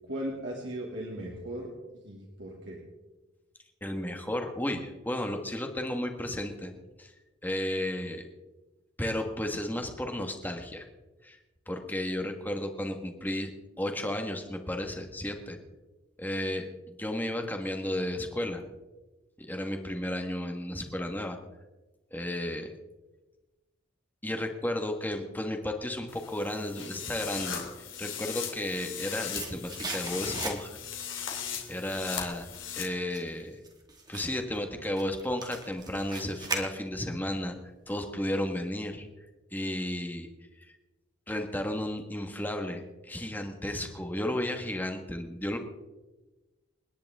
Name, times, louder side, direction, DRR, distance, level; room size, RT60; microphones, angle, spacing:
voice 1, 0.1-2.8, right 1 dB, 65° right, -2 dB, 2.7 m, -38 dB
voice 2, 3.8-6.7 7.0-7.1 7.4-8.2 9.0-10.8 11.2-11.4 11.7-13.5 13.8-15.6 16.2-18.6 19.4-21.4 22.1-22.7 24.2-27.6 28.0-30.7 31.7-32.5 32.7-33.6 34.1-37.6 37.9-39.1 39.5-40.3 41.3-45.6, left 1 dB, 10° left, 4 dB, 1.6 m, -33 dB
sound 1, 26.1-32.8, left 8 dB, 80° left, 2.9 m, -38 dB
sound 2, 28.8-31.0 31.3-37.2 37.5-37.6, right 3 dB, 20° right, 1.9 m, -40 dB
29.0 x 10.5 x 3.7 m, 1.1 s
head